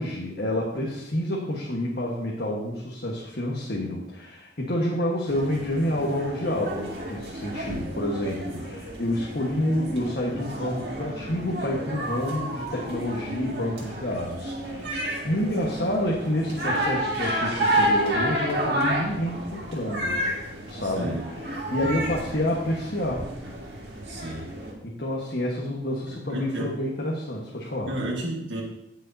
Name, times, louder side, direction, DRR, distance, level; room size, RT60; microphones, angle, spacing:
voice 1, 0.0-15.0 15.2-20.2 20.7-23.2 24.8-27.9, left 1 dB, 60° left, -3 dB, 1.5 m, -28 dB
sound 1, 5.3-24.7, right 1 dB, 60° right, 2.2 m, -31 dB
voice 2, 24.1-24.5 26.1-26.7 27.8-28.6, right 1 dB, 85° right, -2 dB, 1.7 m, -32 dB
17.5 x 6.4 x 2.8 m, 0.83 s
head